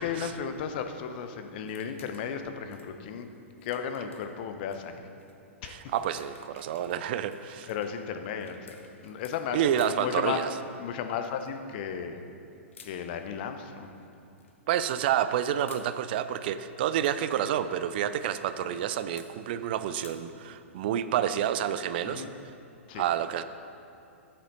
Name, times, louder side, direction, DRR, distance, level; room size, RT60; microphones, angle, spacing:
voice 1, 0.0-3.3 3.6-5.0 5.6-5.8 7.7-10.4 10.8-12.3 12.8-13.9 22.1-22.4 22.9-23.1, left 7 dB, 45° left, 7 dB, 0.8 m, -34 dB
sound 1, 1.6-2.4 2.7-4.8 5.2-5.3 5.7-9.4 9.7-10.1 11.2-11.6 12.7-13.0 14.1-14.6 15.4-15.9 16.8-17.3 19.2-19.3 20.0-20.2, left 5 dB, 65° left, 1.1 m, -55 dB
voice 2, 5.6-7.7 9.5-10.5 14.7-22.2 22.9-23.4, right 10 dB, 45° right, 12 dB, 0.4 m, -29 dB
13.0 x 7.6 x 4.1 m, 2.7 s
figure-of-eight pair, 105°, 7 cm